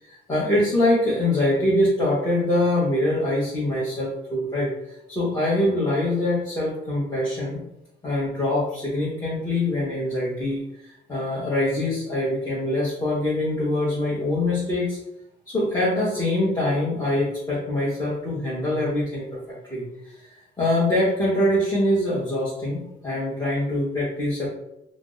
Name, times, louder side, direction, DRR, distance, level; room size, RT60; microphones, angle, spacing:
voice 1, 0.1-4.7 5.1-7.6 8.0-15.0 15.5-24.5, left 1 dB, 20° left, -8 dB, 1.0 m, -24 dB
2.5 x 2.0 x 3.8 m, 0.84 s
cardioid pair, 90°, 20 cm